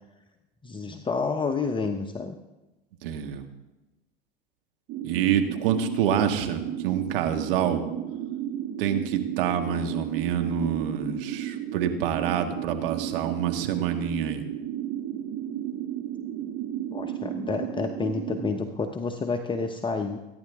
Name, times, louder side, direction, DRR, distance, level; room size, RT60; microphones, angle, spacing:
voice 1, 0.6-2.3 16.9-20.2, left 4 dB, 15° left, 4 dB, 1.0 m, -29 dB
voice 2, 3.0-3.4 5.0-7.8 8.8-14.4, right 8 dB, 70° right, 6 dB, 1.8 m, -27 dB
sound 1, 4.9-18.5, right 11 dB, 50° right, 1.6 m, -33 dB
22.5 x 10.5 x 3.7 m, 1.1 s
hypercardioid pair, 90°, 29 cm